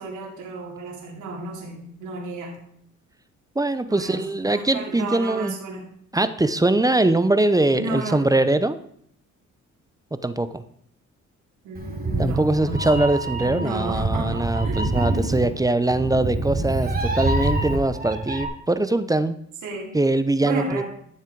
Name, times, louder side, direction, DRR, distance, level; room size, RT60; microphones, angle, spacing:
voice 1, 0.0-2.6 3.9-5.9 7.7-8.2 11.6-14.9 19.6-19.9 20.4-20.8, right 2 dB, 80° right, -1 dB, 2.7 m, -33 dB
voice 2, 3.6-5.5 6.1-8.8 10.2-10.6 12.2-19.4 19.9-20.8, right 2 dB, 10° right, 12 dB, 0.7 m, -22 dB
Meow, 11.7-18.4, right 2 dB, 30° right, 3.3 m, -26 dB
13.0 x 7.4 x 4.7 m, 0.66 s
cardioid pair, 90°, 30 cm